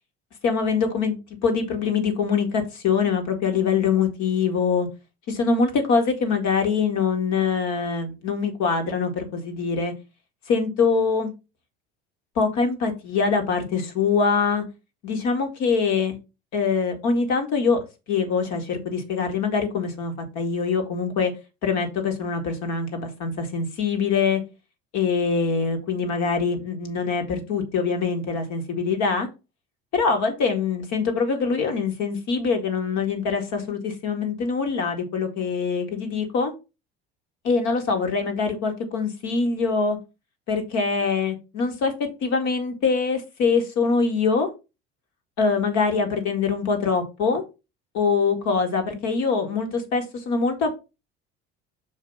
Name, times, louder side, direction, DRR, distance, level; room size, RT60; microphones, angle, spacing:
voice 1, 0.4-4.9 5.3-9.9 10.5-11.3 12.4-14.7 15.0-16.2 16.5-17.8 18.1-21.3 21.6-24.4 24.9-29.3 29.9-36.5 37.4-40.0 40.5-41.9 42.2-44.5 45.4-47.4 47.9-50.7, left 5 dB, 65° left, 1.9 m, -24 dB
6.5 x 2.9 x 5.3 m
hypercardioid pair, 75°, 31 cm